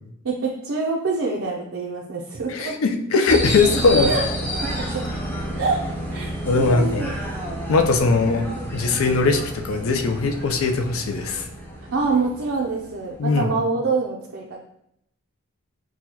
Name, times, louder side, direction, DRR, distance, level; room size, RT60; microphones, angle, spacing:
voice 1, 0.2-2.7 3.5-3.6 4.1-4.2 4.8-5.0 5.6-5.8 6.1-7.2 11.9-14.6, right 4 dB, 60° right, -2 dB, 0.4 m, -25 dB
voice 2, 2.5-4.1 6.5-7.0 7.7-8.5 8.7-11.5 13.2-13.5, left 3 dB, 65° left, 5 dB, 0.4 m, -20 dB
sound 1, 3.3-13.2, equal, 10° left, 0.5 m, -30 dB
6.1 x 2.2 x 2.8 m, 0.76 s
head